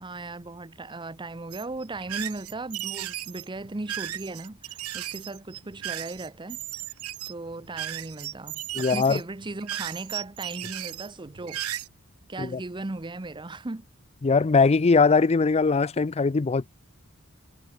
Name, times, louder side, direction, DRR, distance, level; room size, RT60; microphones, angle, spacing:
voice 1, 0.0-6.6 7.3-11.6 12.3-13.9, right 2 dB, 20° right, 0.7 m, -37 dB
sound 1, 1.5-11.9, right 12 dB, 75° right, 1.0 m, -36 dB
voice 2, 8.7-9.2 12.4-12.6 14.2-16.7, left 4 dB, 30° left, 0.4 m, -21 dB
head